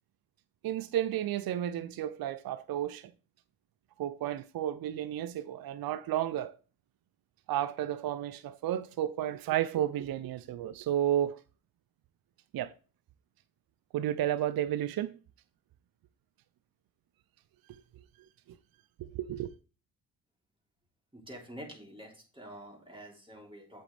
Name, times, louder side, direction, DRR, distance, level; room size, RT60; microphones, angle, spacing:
voice 1, 0.6-3.1 4.0-6.6 7.5-11.4 12.5-12.7 13.9-15.2 19.0-19.5, right 11 dB, 60° right, 0.5 m, -32 dB
voice 2, 21.1-23.8, equal, 15° right, 3.4 m, -47 dB
8.3 x 6.3 x 3.3 m
supercardioid pair, 45°, 41 cm